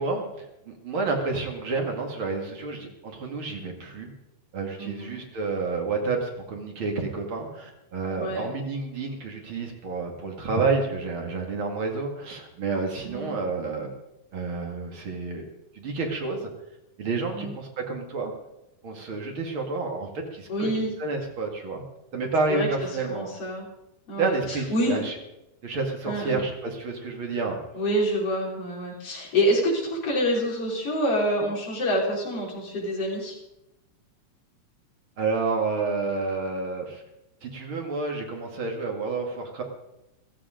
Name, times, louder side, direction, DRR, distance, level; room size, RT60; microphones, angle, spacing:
voice 1, 0.0-4.1 4.5-13.9 14.3-15.4 15.7-16.5 17.0-18.3 18.8-20.7 21.0-21.8 22.1-23.3 24.2-25.1 25.6-27.6 35.2-37.0 37.4-39.6, right 3 dB, 45° right, 2 dB, 2.8 m, -29 dB
voice 2, 4.8-5.2 8.2-8.5 13.0-13.3 17.3-17.5 20.5-20.9 22.5-22.7 23.1-23.7 24.1-25.1 26.0-26.4 27.7-33.4, equal, 50° left, -3 dB, 4.9 m, -27 dB
15.5 x 14.0 x 5.1 m, 0.89 s
omnidirectional pair, 3.4 m